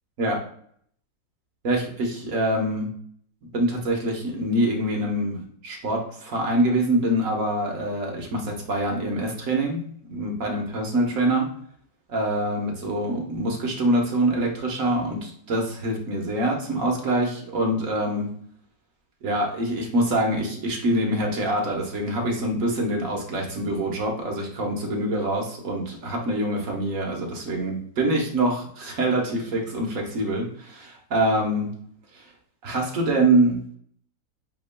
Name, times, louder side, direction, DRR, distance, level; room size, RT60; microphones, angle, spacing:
voice 1, 1.6-2.9 3.5-11.5 12.1-18.3 19.2-31.7 32.1-32.2 32.6-33.6, right 1 dB, 60° right, 1 dB, 1.3 m, -25 dB
8.1 x 2.9 x 2.2 m, 0.62 s
omnidirectional pair, 1.7 m